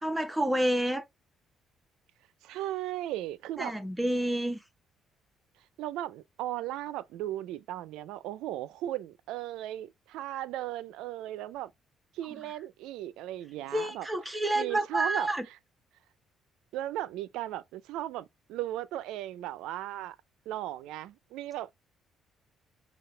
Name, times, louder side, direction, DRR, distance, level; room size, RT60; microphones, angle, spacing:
voice 1, 0.0-1.0 3.6-4.6 13.7-15.5, right 1 dB, 10° right, 1.0 m, -29 dB
voice 2, 2.4-3.7 5.8-11.7 12.1-15.3 16.7-20.2 20.5-21.7, right 13 dB, 85° right, 0.4 m, -36 dB
5.6 x 2.4 x 3.2 m
supercardioid pair, 80°, 0 cm